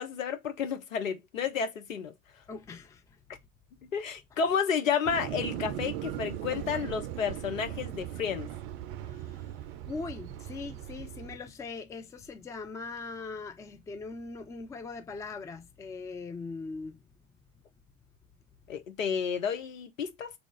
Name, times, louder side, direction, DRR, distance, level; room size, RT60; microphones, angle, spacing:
voice 1, 0.0-2.1 3.9-8.5 18.7-20.3, left 6 dB, 80° left, 0.7 m, -31 dB
voice 2, 2.5-3.0 9.0-9.5 9.9-17.0, left 4 dB, 10° left, 0.4 m, -41 dB
sound 1, 5.0-11.4, right 12 dB, 45° right, 0.5 m, -39 dB
3.4 x 2.4 x 3.7 m
figure-of-eight pair, 70°, 40 cm